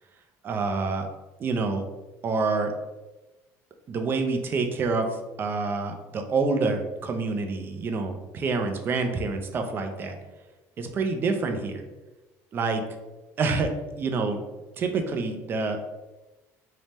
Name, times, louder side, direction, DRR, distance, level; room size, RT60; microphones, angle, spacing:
voice 1, 0.4-1.1 1.4-1.8 2.2-2.7 3.9-5.1 5.4-10.2 10.8-11.8 12.5-12.8 13.4-13.7 14.0-14.4 14.8-15.8, right 4 dB, 35° right, 5 dB, 0.4 m, -27 dB
2.7 x 2.1 x 3.2 m, 1.1 s
cardioid pair, 130°, 7 cm